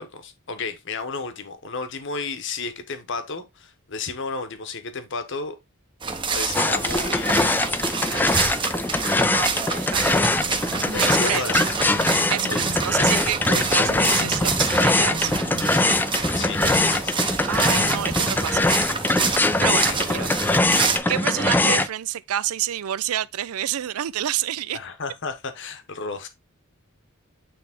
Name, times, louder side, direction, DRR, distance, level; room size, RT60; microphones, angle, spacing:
voice 1, 0.0-5.6 6.3-7.8 8.2-8.6 10.8-11.7 12.5-12.6 13.6-13.8 16.2-17.2 19.9-20.3 21.0-21.2 24.7-26.3, left 4 dB, 60° left, 1.1 m, -33 dB
sound 1, 6.0-21.0, right 5 dB, 20° right, 0.8 m, -28 dB
sound 2, 6.5-21.9, left 2 dB, 10° left, 0.4 m, -22 dB
voice 2, 9.3-10.2 11.0-11.6 12.3-15.3 17.5-18.8 19.6-20.3 21.1-24.8, right 11 dB, 90° right, 0.4 m, -28 dB
sound 3, 10.3-11.4 11.9-13.0 13.4-14.6 15.0-16.1 16.5-17.2 17.7-18.5, left 1 dB, 45° right, 1.5 m, -38 dB
8.7 x 3.4 x 3.5 m
head